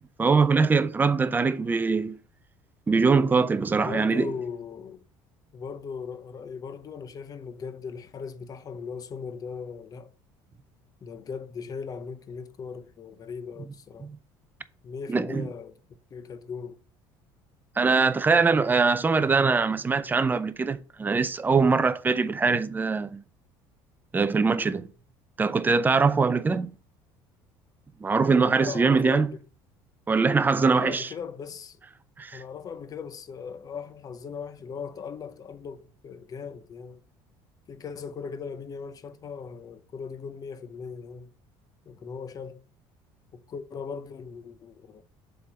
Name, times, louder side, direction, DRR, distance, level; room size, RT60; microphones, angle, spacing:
voice 1, 0.2-2.2 2.9-4.3 14.0-14.1 15.1-15.4 17.8-23.2 24.1-24.9 25.4-26.7 28.0-29.3 30.1-31.1 32.2-32.4, right 4 dB, 20° right, 0.5 m, -22 dB
voice 2, 3.7-5.0 5.5-10.1 11.0-14.1 14.8-15.8 16.1-16.8 28.3-29.4 30.4-31.8 32.3-37.0 37.7-41.3 41.9-42.6 43.3-45.0, left 6 dB, 35° left, 0.9 m, -38 dB
6.9 x 3.7 x 4.9 m
cardioid pair, 115°, 10 cm